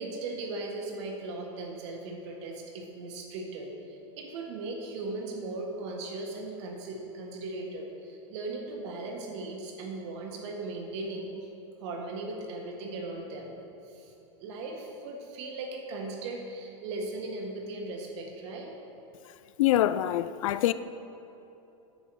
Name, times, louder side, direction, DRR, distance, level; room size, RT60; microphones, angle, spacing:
voice 1, 0.0-11.3 11.8-13.5 14.0-14.1 14.4-18.7, right 2 dB, 60° right, 1.6 m, -38 dB
voice 2, 19.6-20.7, left 13 dB, 85° left, 0.4 m, -24 dB
10.0 x 7.2 x 4.7 m
supercardioid pair, 145°, 17 cm